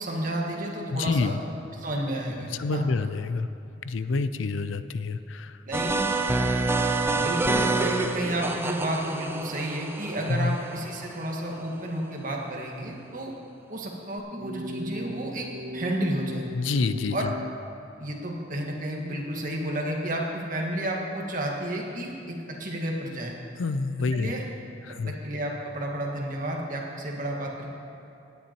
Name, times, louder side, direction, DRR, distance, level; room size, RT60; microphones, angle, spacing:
voice 1, 0.0-2.8 5.7-6.1 7.0-13.3 13.7-15.5 15.7-16.5 17.1-17.3 18.0-23.3 24.1-24.4 25.1-27.7, right 1 dB, 45° right, -1 dB, 1.6 m, -31 dB
voice 2, 0.9-1.4 2.6-3.5 3.8-5.5 10.3-10.6 16.5-17.2 23.6-24.3 24.9-25.1, left 4 dB, 80° left, 12 dB, 0.4 m, -27 dB
sound 1, 5.7-11.5, right 2 dB, 10° right, 0.4 m, -27 dB
sound 2, 14.3-17.6, equal, 85° right, 0.5 m, -37 dB
17.5 x 10.0 x 3.0 m, 2.7 s
head